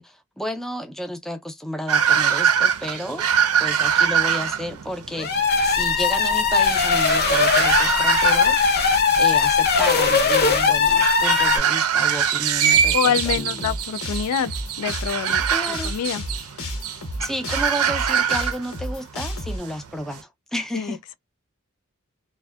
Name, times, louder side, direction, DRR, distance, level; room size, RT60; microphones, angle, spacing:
voice 1, 0.0-3.2 3.6-13.7 15.5-15.9 17.2-21.0, equal, ahead, 0.4 m, -32 dB
sound 1, 1.9-20.2, right 8 dB, 85° right, 0.5 m, -24 dB
sound 2, 5.1-11.6, left 5 dB, 45° left, 0.7 m, -19 dB
sound 3, 12.7-19.6, equal, 70° left, 1.0 m, -32 dB
voice 2, 12.9-14.5 14.8-15.4 15.8-16.2 20.7-21.1, left 8 dB, 85° left, 0.3 m, -25 dB
2.6 x 2.1 x 2.2 m
head